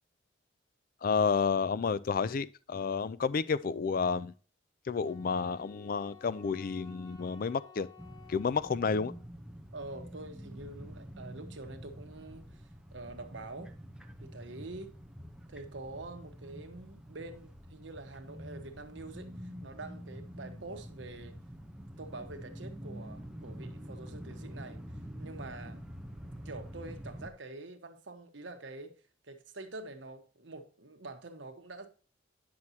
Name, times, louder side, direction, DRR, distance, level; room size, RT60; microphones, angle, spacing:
voice 1, 1.0-4.3 4.8-7.9 8.3-9.1, left 5 dB, 50° left, 0.4 m, -30 dB
Wind instrument woodwind instrument, 5.0-9.3, left 6 dB, 20° left, 1.8 m, -56 dB
sound 1, 8.0-27.3, equal, 5° right, 0.7 m, -47 dB
voice 2, 9.7-13.7 14.2-14.9 15.5-21.4 22.0-25.8 26.4-29.0 29.3-31.9, right 2 dB, 80° right, 1.2 m, -46 dB
9.6 x 6.0 x 2.8 m
head